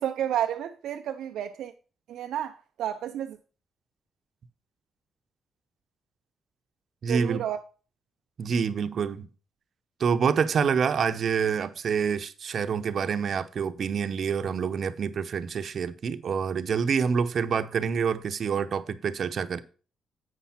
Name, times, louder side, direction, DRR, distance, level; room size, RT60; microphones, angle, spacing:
voice 1, 0.0-1.7 2.1-3.4 7.1-7.6, right 10 dB, 80° right, 0.5 m, -31 dB
voice 2, 7.0-7.5 8.4-9.3 10.0-19.6, right 6 dB, 60° right, 0.8 m, -27 dB
8.2 x 5.7 x 5.7 m
cardioid pair, 70°, 0 cm